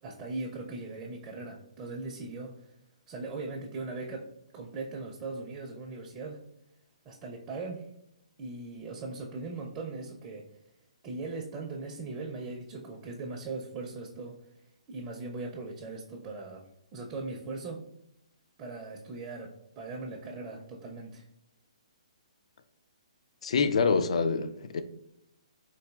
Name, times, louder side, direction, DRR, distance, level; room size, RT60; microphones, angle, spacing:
voice 1, 0.0-2.7 3.1-6.4 7.0-7.9 8.4-10.5 11.0-14.4 14.9-16.6 16.9-17.9 18.6-21.2, right 3 dB, 20° right, 0.4 m, -39 dB
voice 2, 23.4-24.8, left 5 dB, 65° left, 0.3 m, -26 dB
3.9 x 2.5 x 2.3 m
hypercardioid pair, 150°, 4 cm